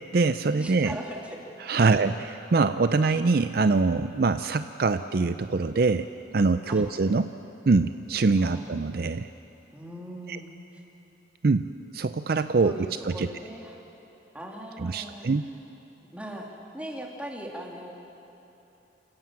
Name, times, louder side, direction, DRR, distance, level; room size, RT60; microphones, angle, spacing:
voice 1, 0.0-1.0 1.7-6.1 6.3-7.3 7.7-9.3 10.3-10.4 11.4-11.7 11.9-12.7 13.0-13.3 14.8-15.5, right 3 dB, 55° right, 11 dB, 0.5 m, -24 dB
voice 2, 0.5-1.4 6.7-6.9 8.4-8.8 9.7-10.8 12.6-13.8 14.3-15.5 16.1-17.9, right 1 dB, 5° right, -1 dB, 2.5 m, -40 dB
28.5 x 16.5 x 7.4 m, 3.0 s
head